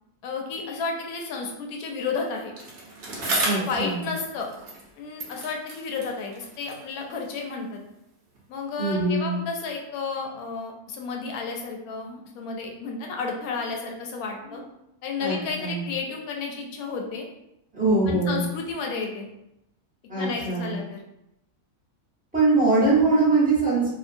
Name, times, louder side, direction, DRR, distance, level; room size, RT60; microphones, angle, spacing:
voice 1, 0.2-2.5 3.5-4.5 5.0-7.8 8.5-14.6 15.0-17.3 18.1-19.3 20.2-21.0, left 4 dB, 75° left, 1 dB, 1.0 m, -32 dB
Bicycle, 2.6-4.9 5.2-7.6 8.3-8.4, right 2 dB, 55° right, 0.6 m, -33 dB
voice 2, 3.4-4.0 8.8-9.3 14.5-14.6 15.2-15.8 17.7-18.4 20.1-20.8 22.3-23.9, right 3 dB, 10° right, -8 dB, 0.6 m, -22 dB
2.7 x 2.3 x 2.5 m, 0.85 s
omnidirectional pair, 1.6 m